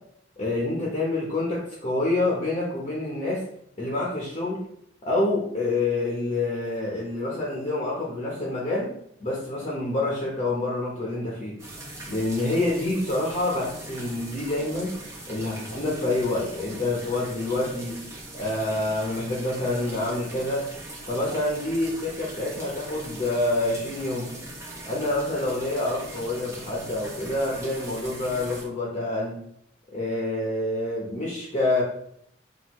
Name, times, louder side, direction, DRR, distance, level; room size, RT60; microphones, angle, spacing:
voice 1, 0.4-3.4 3.8-4.6 5.0-8.9 9.2-11.6 12.1-15.0 15.3-18.0 18.3-20.6 21.1-24.3 24.9-29.4 29.9-31.8, left 2 dB, 35° left, -4 dB, 0.9 m, -27 dB
sound 1, 11.6-28.6, right 1 dB, 15° right, 1.0 m, -40 dB
5.9 x 2.7 x 3.1 m, 0.71 s
head